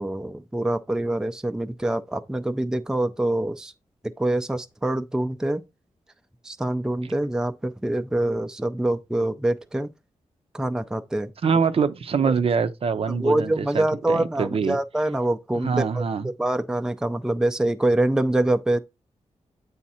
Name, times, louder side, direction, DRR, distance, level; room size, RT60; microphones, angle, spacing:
voice 1, 0.0-3.7 4.0-5.6 6.4-9.9 10.5-11.3 12.2-12.3 13.1-18.8, right 1 dB, 5° right, 0.5 m, -25 dB
voice 2, 11.4-14.8 15.5-16.3, right 5 dB, 55° right, 0.6 m, -24 dB
8.6 x 3.5 x 4.2 m
wide cardioid pair, 120°, 12 cm